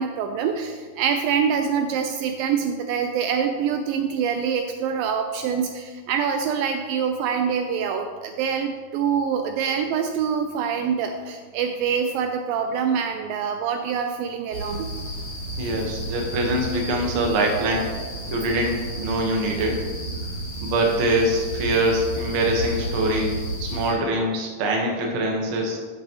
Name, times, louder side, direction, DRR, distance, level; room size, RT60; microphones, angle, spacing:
voice 1, 0.0-14.9, right 7 dB, 80° right, 6 dB, 2.2 m, -25 dB
sound 1, 14.5-23.9, right 1 dB, 60° left, 4.2 m, -32 dB
voice 2, 15.6-17.9 18.3-19.7 20.6-23.3 23.6-25.8, right 1 dB, 55° right, 0 dB, 1.5 m, -23 dB
12.5 x 8.1 x 3.1 m, 1.5 s
omnidirectional pair, 4.3 m